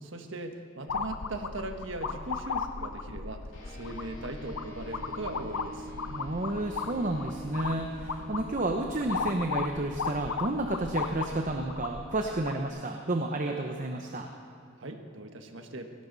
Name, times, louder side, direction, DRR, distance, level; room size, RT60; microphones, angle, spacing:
voice 1, 0.0-5.9 14.8-15.9, right 2 dB, 70° right, 5 dB, 1.4 m, -39 dB
sound 1, 0.9-12.7, left 5 dB, 85° left, 0.7 m, -36 dB
sound 2, 3.5-13.3, equal, 65° left, 3.5 m, -47 dB
voice 2, 6.1-14.3, right 2 dB, 40° right, 3 dB, 0.8 m, -31 dB
18.0 x 17.5 x 4.0 m, 2.6 s
head